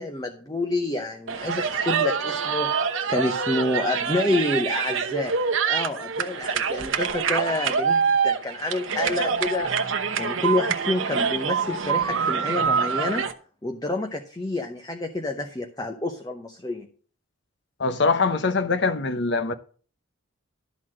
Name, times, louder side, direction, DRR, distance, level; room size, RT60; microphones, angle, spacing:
voice 1, 0.0-2.7 3.1-5.3 5.6-9.7 10.2-13.2 13.6-16.9, left 2 dB, 20° left, 0.8 m, -28 dB
sound 1, 1.3-13.3, right 6 dB, 65° right, 0.9 m, -25 dB
voice 2, 17.8-19.5, left 4 dB, 55° left, 0.9 m, -23 dB
12.5 x 4.2 x 7.5 m
head